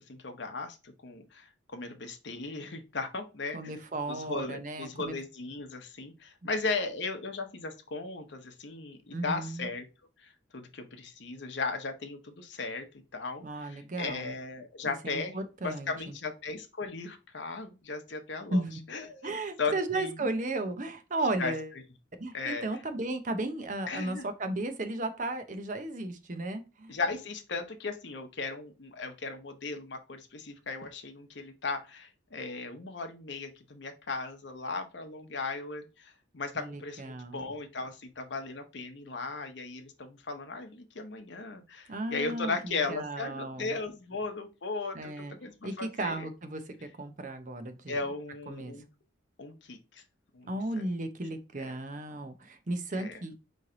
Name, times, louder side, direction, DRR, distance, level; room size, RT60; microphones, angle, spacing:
voice 1, 0.0-3.7 4.1-9.9 10.2-12.9 13.1-15.3 15.6-18.6 18.9-20.3 21.4-21.5 22.3-22.6 23.9-24.3 26.9-46.3 47.9-48.9 49.4-50.0 50.3-50.9 51.6-51.8 52.9-53.2, left 3 dB, 65° left, 5 dB, 0.9 m, -37 dB
voice 2, 3.5-5.1 9.1-9.7 13.4-14.3 14.8-16.1 18.5-18.8 19.2-21.7 22.2-26.9 36.5-37.4 41.9-43.8 44.9-45.4 45.6-48.0 48.5-48.7 50.5-53.4, right 2 dB, 40° right, 8 dB, 0.7 m, -35 dB
4.4 x 3.1 x 3.8 m, 0.29 s
head